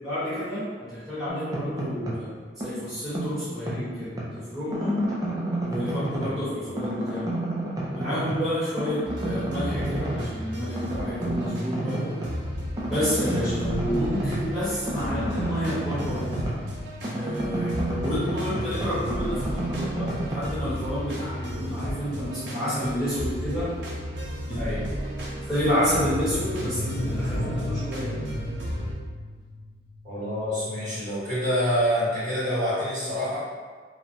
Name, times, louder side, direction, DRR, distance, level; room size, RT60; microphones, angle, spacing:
voice 1, 0.0-5.0 5.6-7.3 7.9-12.2 12.9-16.3 17.1-23.7 24.5-24.6 25.2-28.4, equal, 5° right, -16 dB, 1.2 m, -30 dB
sound 1, 1.3-2.3 2.6-4.3 4.7-6.5 6.8-8.5 8.8-10.4 10.7-12.4 12.8-16.7 17.0-20.4, right 1 dB, 20° right, 0.4 m, -31 dB
sound 2, 9.0-28.9, equal, 80° right, 0.5 m, -34 dB
voice 2, 17.4-17.8 24.6-24.8 30.0-33.4, equal, 45° right, -13 dB, 1.4 m, -27 dB
sound 3, 25.6-30.1 30.3-30.4, left 1 dB, 70° left, 0.6 m, -34 dB
2.9 x 2.2 x 2.6 m, 1.5 s
head